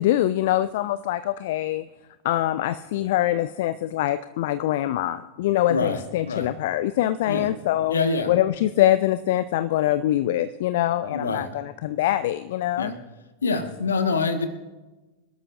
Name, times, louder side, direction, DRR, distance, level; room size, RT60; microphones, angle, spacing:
voice 1, 0.0-1.9 2.2-8.0 8.3-12.9, left 13 dB, 55° left, 14 dB, 0.4 m, -24 dB
voice 2, 5.7-6.5 7.3-7.5 7.9-8.3 11.1-11.5 12.8-13.0 13.4-14.5, left 4 dB, 70° left, 8 dB, 1.5 m, -25 dB
26.0 x 13.0 x 2.6 m, 1.2 s
figure-of-eight pair, 90°, 0 cm